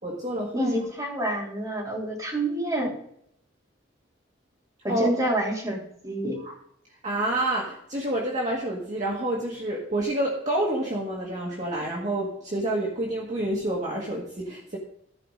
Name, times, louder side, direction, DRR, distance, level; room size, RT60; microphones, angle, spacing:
voice 1, 0.0-0.8 4.9-5.1 6.4-6.5 7.0-14.8, right 1 dB, 35° right, -3 dB, 1.8 m, -28 dB
voice 2, 0.5-2.9 4.8-6.4, right 1 dB, 20° right, -3 dB, 3.3 m, -28 dB
14.5 x 5.0 x 5.1 m, 0.70 s
head